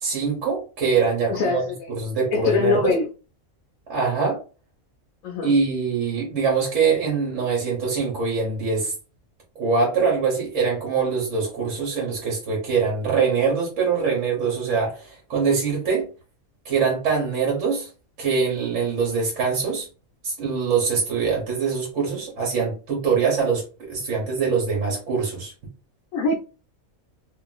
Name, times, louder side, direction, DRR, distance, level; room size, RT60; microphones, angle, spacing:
voice 1, 0.0-1.6 1.9-2.9 3.9-4.4 5.4-8.9 9.5-16.1 16.6-17.9 18.2-19.9 20.2-25.5, right 5 dB, 65° right, 1.2 m, -23 dB
voice 2, 1.3-1.8 2.3-3.1 5.2-5.5 26.1-26.3, left 4 dB, 75° left, 1.0 m, -22 dB
2.8 x 2.5 x 2.3 m
omnidirectional pair, 1.5 m